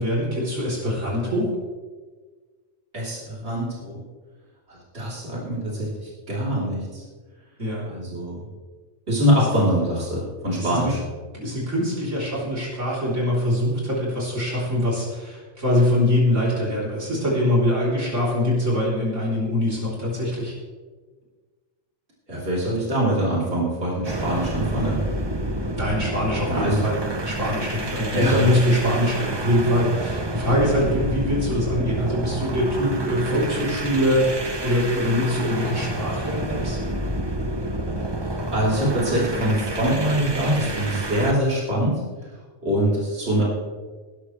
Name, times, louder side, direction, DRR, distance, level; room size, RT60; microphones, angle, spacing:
voice 1, 0.0-1.5 7.6-7.9 9.4-9.5 10.6-10.9 11.3-20.5 25.8-27.0 27.2-36.8, left 1 dB, 75° right, -6 dB, 4.0 m, -23 dB
voice 2, 2.9-4.0 4.9-5.9 6.3-7.0 7.9-8.4 9.1-11.0 22.3-25.0 26.5-26.8 28.1-28.5 38.5-42.0 42.6-43.4, right 1 dB, 60° right, -6 dB, 3.9 m, -23 dB
sound 1, 24.0-41.4, right 1 dB, 25° right, 0.8 m, -29 dB
19.5 x 12.0 x 3.3 m, 1.4 s
omnidirectional pair, 1.3 m